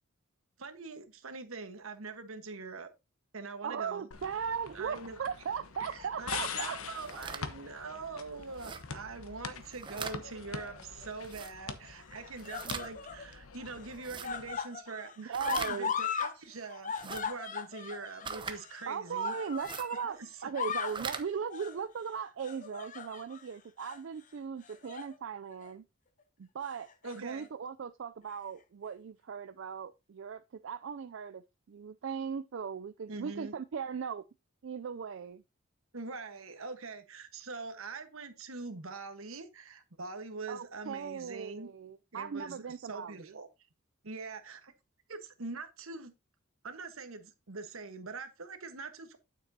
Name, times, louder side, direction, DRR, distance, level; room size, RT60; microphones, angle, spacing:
voice 1, 0.6-2.9 3.3-4.1 4.7-5.2 5.9-19.3 20.2-20.3 27.0-27.5 33.1-33.5 35.9-41.7 42.1-43.5 44.0-44.7 45.1-46.1 46.6-49.2, right 4 dB, 80° right, 1.3 m, -43 dB
voice 2, 3.6-6.8 15.2-15.9 18.9-25.8 26.4-26.9 27.2-31.4 31.7-34.2 34.6-35.4 40.5-43.3, right 6 dB, 60° right, 0.4 m, -38 dB
sound 1, 4.1-14.6, left 5 dB, 90° left, 1.1 m, -44 dB
sound 2, 6.9-7.4 8.5-8.8 9.6-10.2 11.2-11.5 12.4-12.9 13.9-14.3 15.3-15.7 16.9-17.2 18.2-18.6 19.5-19.9 20.8-21.2, right 5 dB, 20° right, 0.7 m, -41 dB
sound 3, 10.5-11.1 12.0-13.3 13.6-16.4 16.6-20.1 20.4-21.0 21.5-21.8 22.4-23.4 23.8-24.0 24.6-25.2 25.5-25.7 26.8-27.5 28.3-28.4, left 7 dB, 35° left, 0.7 m, -38 dB
9.2 x 7.5 x 2.8 m
head